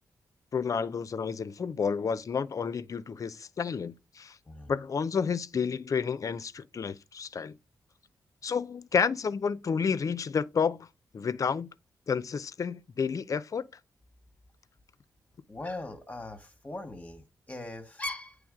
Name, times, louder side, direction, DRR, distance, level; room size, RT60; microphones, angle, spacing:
voice 1, 0.5-4.4 4.7-7.5 8.4-10.9 11.1-11.7 12.1-13.6, left 6 dB, 50° left, 0.5 m, -30 dB
voice 2, 15.5-18.4, left 2 dB, 20° left, 1.0 m, -40 dB
8.6 x 3.4 x 3.6 m
cardioid pair, 75°, 7 cm